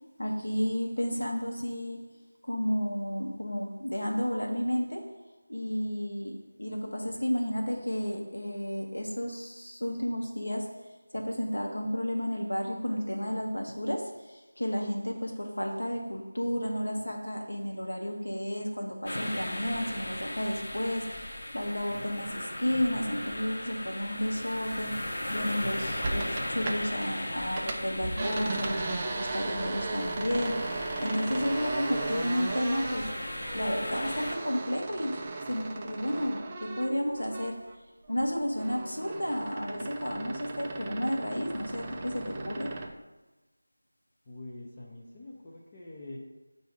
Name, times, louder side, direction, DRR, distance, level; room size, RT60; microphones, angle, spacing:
voice 1, 0.2-2.1 2.4-5.1 5.5-10.8 11.1-33.1 33.5-35.2 35.5-37.6 38.1-42.8, equal, 75° left, 1 dB, 1.0 m, -32 dB
sound 1, 19.1-34.4, left 1 dB, 40° left, 1.0 m, -37 dB
sound 2, 26.0-27.1 27.4-37.8 38.1-42.9, right 3 dB, 20° right, 0.4 m, -37 dB
voice 2, 44.3-46.2, left 2 dB, 20° left, -5 dB, 0.6 m, -45 dB
7.8 x 2.7 x 5.0 m, 1.1 s
figure-of-eight pair, 170°, 0 cm